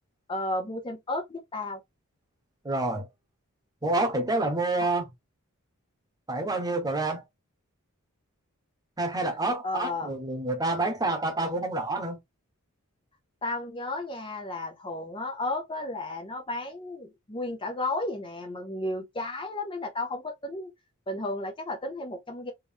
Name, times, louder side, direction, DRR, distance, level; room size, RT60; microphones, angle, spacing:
voice 1, 0.3-1.8 9.6-10.1 13.4-20.7 21.1-22.5, left 2 dB, 25° left, 0.6 m, -33 dB
voice 2, 2.6-3.1 3.8-5.1 6.3-7.2 9.0-12.2, right 2 dB, 15° right, 1.0 m, -28 dB
3.6 x 3.0 x 2.8 m
head